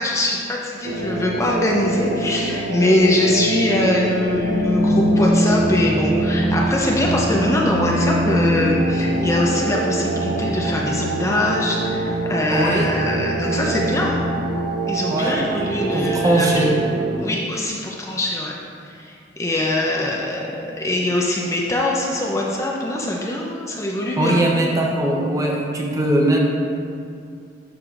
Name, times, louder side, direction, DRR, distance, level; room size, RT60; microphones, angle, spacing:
voice 1, 0.0-14.2 14.9-16.7 17.2-18.5 18.8-24.4, left 1 dB, 15° left, -2 dB, 0.5 m, -22 dB
sound 1, 0.8-17.2, right 1 dB, 60° right, 0.8 m, -23 dB
voice 2, 12.5-13.0 15.1-15.4 15.9-16.7 24.2-26.4, right 1 dB, 20° right, -1 dB, 0.7 m, -20 dB
11.0 x 4.8 x 2.5 m, 2.3 s
head